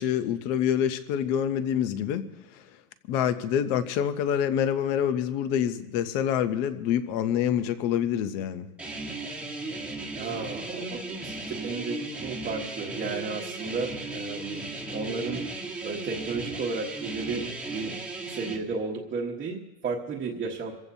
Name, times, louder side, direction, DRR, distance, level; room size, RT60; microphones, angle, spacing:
voice 1, 0.0-2.3 2.5-2.6 3.1-8.7, left 9 dB, 25° left, 13 dB, 0.5 m, -26 dB
sound 1, 8.8-18.6, right 2 dB, 5° right, 1.2 m, -36 dB
voice 2, 10.2-15.4 15.8-17.9 18.3-20.7, right 4 dB, 20° right, -4 dB, 1.2 m, -33 dB
27.5 x 15.5 x 2.7 m, 1.1 s
supercardioid pair, 155°, 49 cm